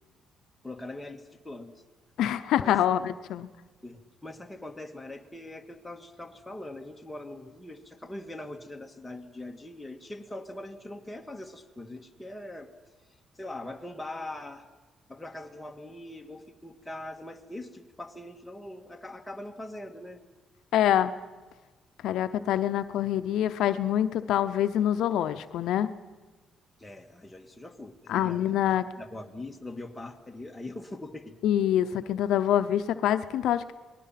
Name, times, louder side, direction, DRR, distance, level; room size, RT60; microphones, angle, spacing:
voice 1, 0.6-1.8 2.6-3.0 3.8-12.7 13.4-14.7 15.1-20.2 26.8-31.4, left 1 dB, 10° left, 3 dB, 1.8 m, -42 dB
voice 2, 2.2-3.5 20.7-21.1 22.0-25.9 28.1-28.8 31.4-33.7, left 11 dB, 85° left, 10 dB, 0.7 m, -25 dB
27.5 x 20.5 x 5.8 m, 1.3 s
cardioid pair, 90°, 0 cm